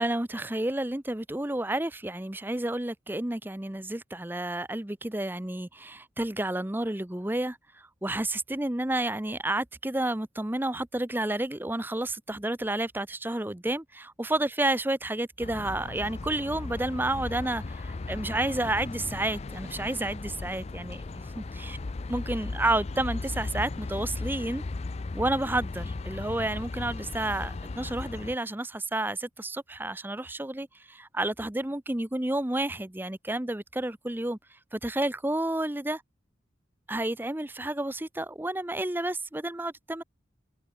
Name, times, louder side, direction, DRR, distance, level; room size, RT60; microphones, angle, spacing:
voice 1, 0.0-21.8 22.1-24.6 25.1-34.4 34.7-36.0 36.9-40.0, right 1 dB, 10° right, 0.7 m, -30 dB
sound 1, 15.4-28.4, left 3 dB, 35° left, 0.4 m, -36 dB
head